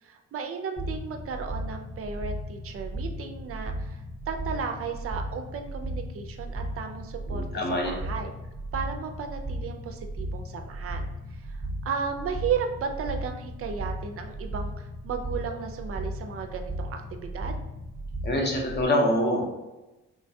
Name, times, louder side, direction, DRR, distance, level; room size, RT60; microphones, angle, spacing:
voice 1, 0.0-8.3 8.7-11.0 11.3-17.5, right 6 dB, 50° right, 5 dB, 0.4 m, -34 dB
sound 1, 0.8-18.8, right 1 dB, 5° right, 0.7 m, -36 dB
voice 2, 7.3-7.9 18.2-19.6, left 1 dB, 35° left, 0 dB, 0.8 m, -25 dB
3.2 x 2.2 x 2.6 m, 1.0 s
cardioid pair, 90°, 30 cm